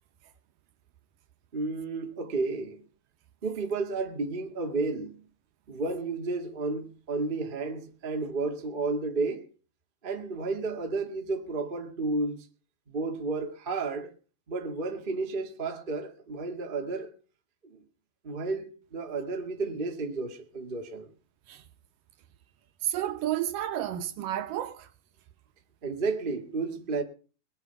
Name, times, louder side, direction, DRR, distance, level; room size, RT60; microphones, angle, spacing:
voice 1, 1.5-2.8 3.4-5.2 5.7-9.4 10.0-12.4 12.9-14.1 14.5-17.1 17.7-17.8 18.2-21.1 25.8-27.0, right 3 dB, 30° right, 1.0 m, -32 dB
voice 2, 22.8-24.9, right 12 dB, 75° right, 2.4 m, -31 dB
21.5 x 8.3 x 5.8 m
omnidirectional pair, 4.2 m